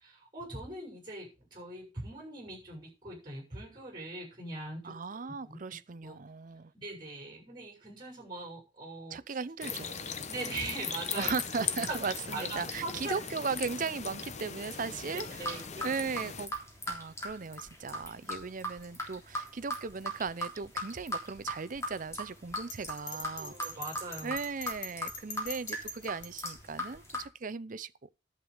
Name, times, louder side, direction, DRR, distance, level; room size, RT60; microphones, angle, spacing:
voice 1, 0.0-5.0 5.4-5.6 6.0-6.1 6.7-9.4 10.3-11.9 12.3-13.2 15.1-15.9 23.4-24.3, right 2 dB, 25° right, 6.8 m, -41 dB
voice 2, 4.8-6.7 9.1-10.3 11.1-16.5 16.9-23.5 24.2-28.1, right 5 dB, 45° right, 0.6 m, -37 dB
sound 1, 9.6-16.5, left 7 dB, 40° left, 0.9 m, -39 dB
sound 2, 15.2-27.2, equal, 15° left, 3.5 m, -39 dB
Bell, 22.7-26.3, left 4 dB, 85° left, 2.7 m, -42 dB
11.0 x 8.1 x 5.1 m
head